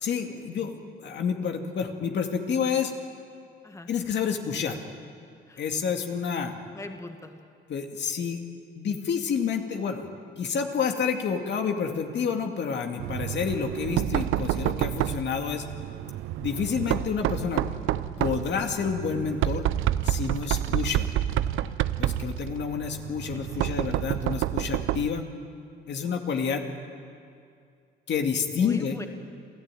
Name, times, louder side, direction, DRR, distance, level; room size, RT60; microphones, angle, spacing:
voice 1, 0.0-2.9 3.9-4.8 5.6-6.5 7.7-8.4 8.8-10.1 10.4-15.6 16.4-17.6 18.2-19.7 20.0-21.1 22.0-25.3 25.9-26.6 28.1-29.0, left 6 dB, 65° left, 3 dB, 2.3 m, -29 dB
voice 2, 6.7-7.4 23.3-24.0 28.6-29.1, left 2 dB, 15° left, 5 dB, 1.8 m, -42 dB
Knock, 13.0-25.2, right 13 dB, 90° right, 0.6 m, -29 dB
28.0 x 14.5 x 9.2 m, 2.3 s
cardioid pair, 90°, 20 cm